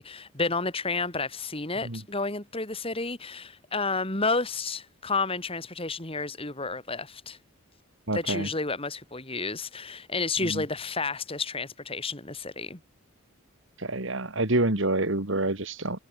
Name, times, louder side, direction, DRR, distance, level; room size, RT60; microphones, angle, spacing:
voice 1, 0.0-7.4 8.1-12.8, left 3 dB, 25° left, 3.2 m, -31 dB
voice 2, 8.1-8.5 10.4-10.6 13.8-16.0, right 2 dB, 60° right, 2.4 m, -27 dB
head